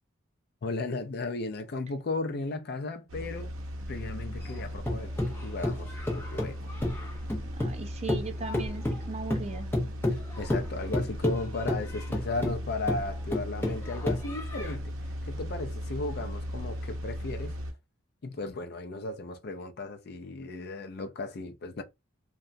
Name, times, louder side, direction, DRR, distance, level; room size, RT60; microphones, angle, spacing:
voice 1, 0.6-3.5 3.9-6.6 10.1-14.9 15.2-17.6 18.2-21.8, left 3 dB, 50° left, 0.4 m, -35 dB
sound 1, 3.1-17.7, equal, 80° right, 0.6 m, -37 dB
sound 2, 4.4-7.8 8.1-14.7, left 1 dB, 10° left, 0.7 m, -31 dB
voice 2, 7.4-9.7, right 4 dB, 30° right, 0.3 m, -38 dB
2.9 x 2.2 x 2.5 m
head